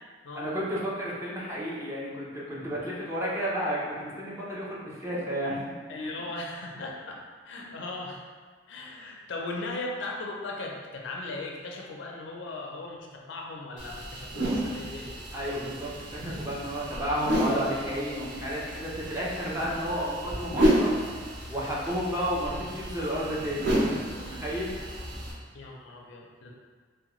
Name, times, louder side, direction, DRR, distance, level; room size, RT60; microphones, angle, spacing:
voice 1, 0.3-6.1 7.5-7.7 15.3-24.7, equal, 15° right, -6 dB, 0.5 m, -32 dB
voice 2, 5.9-7.2 7.4-8.2 8.7-15.1 25.5-26.5, left 2 dB, 75° left, -1 dB, 0.5 m, -38 dB
sound 1, 13.8-25.3, equal, 70° right, 0.9 m, -31 dB
3.5 x 2.1 x 3.0 m, 1.5 s
head